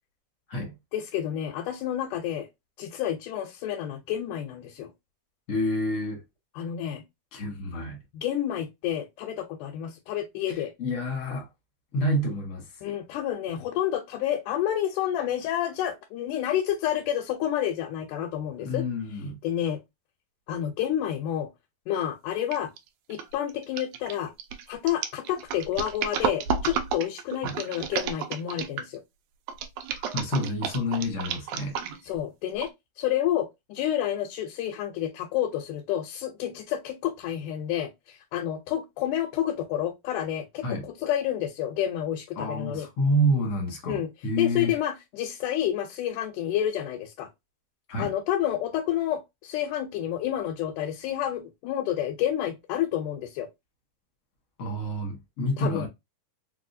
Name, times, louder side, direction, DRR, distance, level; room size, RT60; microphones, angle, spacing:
voice 1, 0.9-2.5 2.8-4.9 6.6-7.0 8.1-10.7 12.8-18.8 19.4-19.8 20.5-21.5 21.9-22.7 23.1-24.3 24.7-29.0 32.1-32.7 33.0-42.9 43.9-44.1 44.4-47.3 48.0-53.5 55.6-55.9, left 11 dB, 90° left, 2.2 m, -29 dB
voice 2, 5.5-6.2 7.3-8.0 10.5-11.5 11.9-12.7 18.6-19.4 27.4-27.5 30.0-31.8 40.6-40.8 42.4-44.7 47.9-48.1 54.6-55.9, equal, 55° left, 0.8 m, -28 dB
sound 1, 22.5-22.8 23.1-29.0 29.5-32.2 32.6-32.7, right 7 dB, 80° right, 1.5 m, -31 dB
4.7 x 2.3 x 2.6 m
omnidirectional pair, 3.5 m